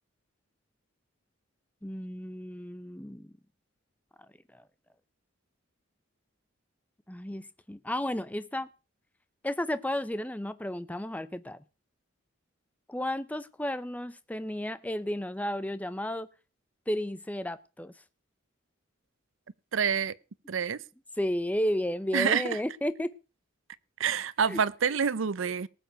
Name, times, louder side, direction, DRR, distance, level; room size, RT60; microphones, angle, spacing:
voice 1, 1.8-3.3 4.5-4.6 7.1-8.7 9.4-11.6 12.9-16.3 16.9-17.9 21.2-23.1 24.5-24.6, left 1 dB, 5° left, 0.6 m, -33 dB
voice 2, 19.7-20.1 20.5-20.8 22.1-22.6 24.0-25.7, right 7 dB, 70° right, 0.6 m, -27 dB
19.0 x 6.9 x 5.2 m
head